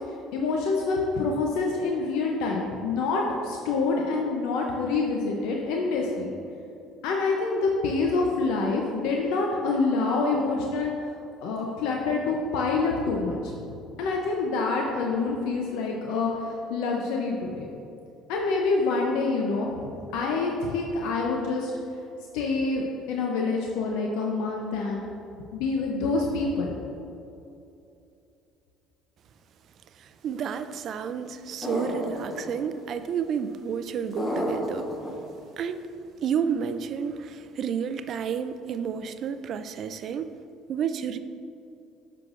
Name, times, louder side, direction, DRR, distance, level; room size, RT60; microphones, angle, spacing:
voice 1, 0.3-6.3 7.0-10.9 11.4-17.7 18.3-21.7 22.3-22.8 23.1-25.0 25.5-26.8, left 3 dB, 80° left, -1 dB, 0.6 m, -26 dB
voice 2, 30.0-34.9 35.6-35.9 36.2-40.3 40.7-41.2, right 7 dB, 55° right, 11 dB, 0.3 m, -31 dB
sound 1, 31.6-32.5 34.2-35.1, left 1 dB, 25° left, 1.0 m, -30 dB
7.7 x 5.8 x 2.5 m, 2.7 s
cardioid pair, 100°, 0 cm